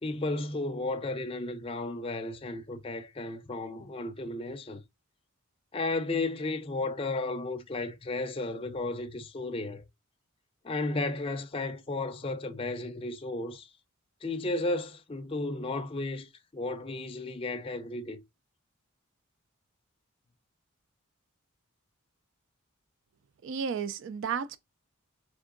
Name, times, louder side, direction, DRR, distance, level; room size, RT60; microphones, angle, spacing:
voice 1, 0.0-4.8 5.7-9.8 10.6-13.7 14.2-18.2, left 2 dB, 25° left, 0.4 m, -34 dB
voice 2, 23.4-24.6, right 6 dB, 55° right, 0.4 m, -33 dB
3.6 x 3.5 x 3.7 m
head